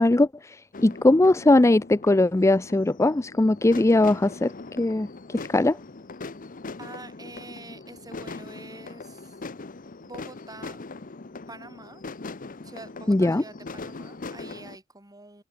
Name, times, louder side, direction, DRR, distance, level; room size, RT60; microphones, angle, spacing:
voice 1, 0.0-5.8 13.1-13.4, left 2 dB, 15° left, 0.4 m, -20 dB
sound 1, 0.7-14.8, left 3 dB, 45° left, 0.9 m, -41 dB
voice 2, 6.8-9.4 10.0-10.8 11.5-12.0 12.6-15.4, right 2 dB, 20° right, 6.5 m, -45 dB
open air
head